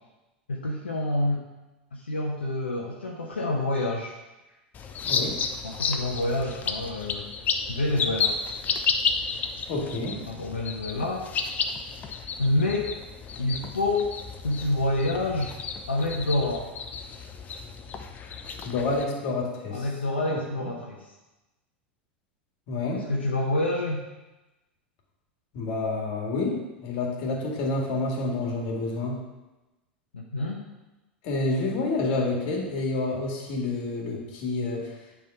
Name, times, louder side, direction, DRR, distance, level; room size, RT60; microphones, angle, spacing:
voice 1, 0.5-1.5 1.9-4.1 5.6-7.3 7.7-8.4 10.3-11.3 12.4-12.9 13.4-14.2 14.4-15.5 15.9-16.7 19.7-21.1 22.9-24.0 30.1-30.6, left 2 dB, 80° left, -1 dB, 0.8 m, -27 dB
sound 1, 4.7-19.0, left 5 dB, 30° left, 0.7 m, -32 dB
voice 2, 5.0-5.4 9.7-10.2 18.6-19.9 20.3-20.7 22.7-23.1 25.5-29.2 31.2-34.9, left 2 dB, 50° left, 0 dB, 2.0 m, -29 dB
9.3 x 3.6 x 5.6 m, 1.1 s
figure-of-eight pair, 85°, 6 cm